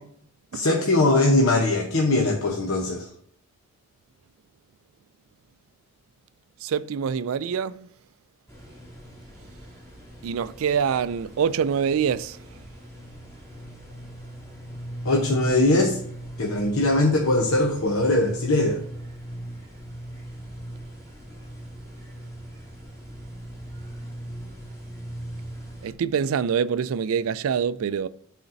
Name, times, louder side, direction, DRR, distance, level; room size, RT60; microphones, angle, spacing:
voice 1, 0.5-3.1 15.0-16.0 16.4-18.8, left 2 dB, 70° left, 0.9 m, -21 dB
voice 2, 6.6-7.9 10.2-12.4 25.8-28.1, right 7 dB, 70° right, 0.3 m, -25 dB
sound 1, 8.5-25.9, right 1 dB, 15° left, 2.2 m, -39 dB
11.5 x 4.2 x 2.6 m
head